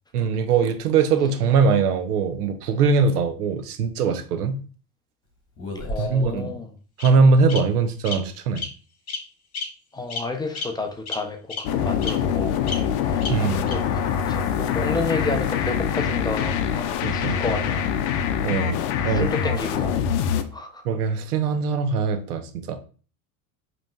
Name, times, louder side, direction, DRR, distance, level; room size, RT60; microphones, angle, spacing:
voice 1, 0.1-4.6 6.0-6.6 7.0-8.6 13.3-13.6 17.0-17.4 18.4-19.3 20.8-22.8, right 5 dB, 80° right, 9 dB, 0.7 m, -21 dB
Bird vocalization bird call bird song, 5.6-6.3 7.0-7.1 7.5-7.6 8.0-8.1 8.5-8.7 9.1-9.2 9.5-9.6 10.1-10.2 10.5-10.6 11.1-11.2 11.5-11.6 12.0-12.1 12.7-12.8 13.2-13.3 13.7-13.8, left 4 dB, 30° left, 1.5 m, -30 dB
voice 2, 5.8-6.7 9.9-17.8 19.1-19.9 20.5-20.8, left 3 dB, 10° left, 4 dB, 0.5 m, -31 dB
sound 1, 11.6-20.4, left 8 dB, 55° left, 0.6 m, -24 dB
5.1 x 3.1 x 2.3 m, 0.38 s
hypercardioid pair, 80°, 45 cm